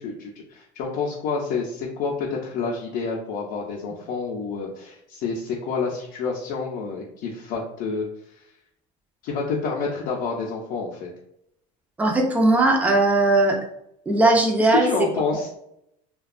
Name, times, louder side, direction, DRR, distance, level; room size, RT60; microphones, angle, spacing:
voice 1, 0.0-8.1 8.4-8.5 9.2-11.1 14.6-15.6, left 4 dB, 60° left, -2 dB, 0.5 m, -28 dB
voice 2, 12.0-13.6 14.1-14.9, right 2 dB, 10° right, 1 dB, 0.4 m, -18 dB
2.8 x 2.2 x 2.4 m, 0.76 s
cardioid pair, 155°, 16 cm